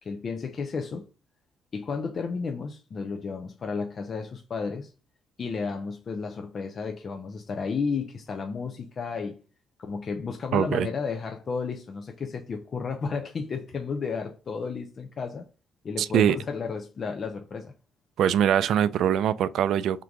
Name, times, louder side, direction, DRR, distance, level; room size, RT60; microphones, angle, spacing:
voice 1, 0.0-1.1 1.7-4.9 5.4-9.4 9.8-15.5 15.8-17.7, left 5 dB, 45° left, 0.5 m, -32 dB
voice 2, 10.5-10.9 16.0-16.4 18.2-20.0, right 9 dB, 75° right, 0.3 m, -23 dB
3.7 x 2.5 x 4.5 m
cardioid pair, 90°, 0 cm